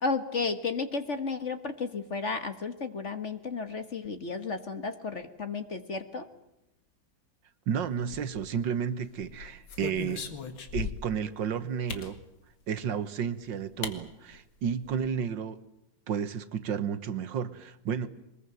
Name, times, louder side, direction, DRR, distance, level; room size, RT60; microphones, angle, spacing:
voice 1, 0.0-6.3, left 4 dB, 40° left, 1.6 m, -33 dB
voice 2, 7.7-10.2 10.7-12.2 12.7-15.6 16.1-18.1, right 7 dB, 70° right, 1.8 m, -32 dB
sound 1, 8.0-8.7 9.2-11.2 11.9-12.1 13.2-13.3 13.8-14.0 14.3-14.4 14.7-15.1, left 6 dB, 80° left, 2.7 m, -38 dB
23.5 x 21.0 x 9.1 m
omnidirectional pair, 2.1 m